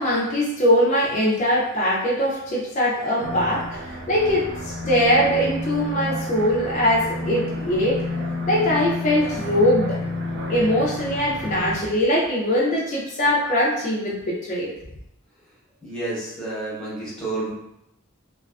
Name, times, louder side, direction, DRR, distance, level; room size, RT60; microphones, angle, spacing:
voice 1, 0.0-8.0 8.5-10.0 10.5-14.7, equal, 35° left, -5 dB, 0.4 m, -21 dB
sound 1, 3.2-11.8, left 1 dB, 50° right, 0.3 m, -30 dB
voice 2, 15.8-17.5, right 2 dB, 5° left, -9 dB, 0.8 m, -30 dB
2.3 x 2.3 x 2.3 m, 0.82 s
head